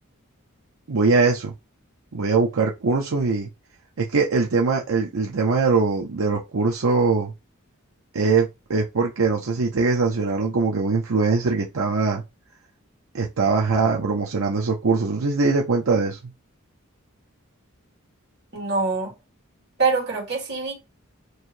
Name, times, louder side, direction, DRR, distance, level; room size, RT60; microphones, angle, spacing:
voice 1, 0.9-1.5 2.1-3.5 4.0-7.3 8.1-12.2 13.1-16.2, right 4 dB, 80° right, 0.7 m, -22 dB
voice 2, 18.5-19.1 19.8-20.7, right 4 dB, 55° right, 2.2 m, -24 dB
3.1 x 2.7 x 4.5 m
head